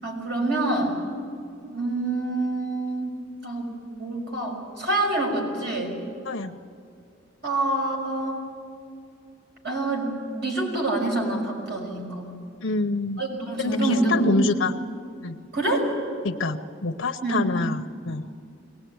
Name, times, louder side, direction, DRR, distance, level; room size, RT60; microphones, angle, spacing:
voice 1, 0.0-1.0 1.7-3.2 3.4-3.7 4.0-5.9 7.4-8.4 9.6-12.4 13.2-14.6 15.5-15.8 17.2-17.5, right 2 dB, 60° right, 0 dB, 5.8 m, -26 dB
voice 2, 6.2-6.6 12.6-13.2 13.6-14.7 15.2-15.4 16.2-18.3, left 3 dB, 90° left, 4 dB, 0.8 m, -26 dB
22.5 x 19.0 x 9.4 m, 2.5 s
head